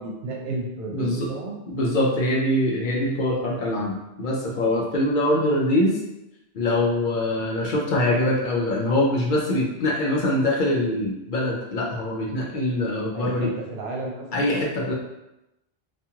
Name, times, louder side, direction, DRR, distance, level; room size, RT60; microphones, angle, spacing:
voice 1, 0.0-1.6 13.1-14.5, right 2 dB, 70° right, -1 dB, 0.9 m, -32 dB
voice 2, 0.9-1.3 1.7-6.0 6.5-13.5 14.3-14.9, left 1 dB, 55° left, -2 dB, 0.7 m, -23 dB
2.4 x 2.4 x 2.8 m, 0.92 s
omnidirectional pair, 1.1 m